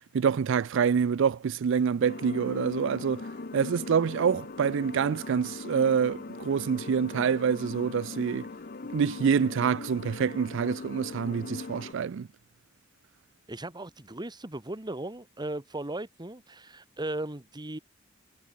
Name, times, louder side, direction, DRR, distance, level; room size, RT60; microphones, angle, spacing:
voice 1, 0.1-3.3 3.5-8.5 8.9-12.3, right 6 dB, 65° right, 0.4 m, -26 dB
sound 1, 2.0-11.9, left 3 dB, 45° left, 0.8 m, -40 dB
voice 2, 13.5-17.8, right 1 dB, 20° right, 1.7 m, -37 dB
head